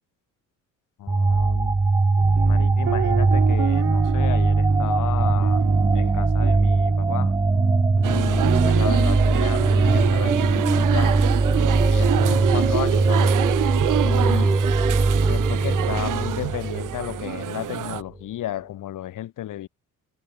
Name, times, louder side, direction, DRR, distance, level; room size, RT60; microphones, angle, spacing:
voice 1, 1.0-1.8 2.4-5.6 5.9-7.4 8.0-11.2 11.9-13.4 14.0-14.6 15.3-19.7, left 13 dB, 70° left, 2.9 m, -33 dB
sound 1, 1.1-17.4, right 3 dB, 10° right, 0.7 m, -20 dB
sound 2, 2.2-12.7, right 12 dB, 50° right, 0.7 m, -31 dB
sound 3, 8.0-18.0, right 13 dB, 70° right, 2.7 m, -28 dB
cardioid pair, 175°, 33 cm